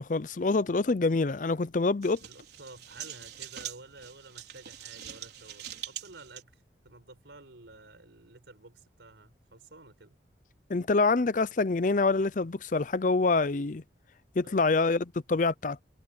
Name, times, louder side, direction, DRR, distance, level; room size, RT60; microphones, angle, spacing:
voice 1, 0.0-2.2 10.7-13.8 14.4-15.8, left 3 dB, 45° left, 0.5 m, -26 dB
sound 1, 2.0-6.4, right 10 dB, 65° right, 5.0 m, -43 dB
voice 2, 2.2-10.2 14.4-14.9, right 3 dB, 90° right, 4.8 m, -52 dB
head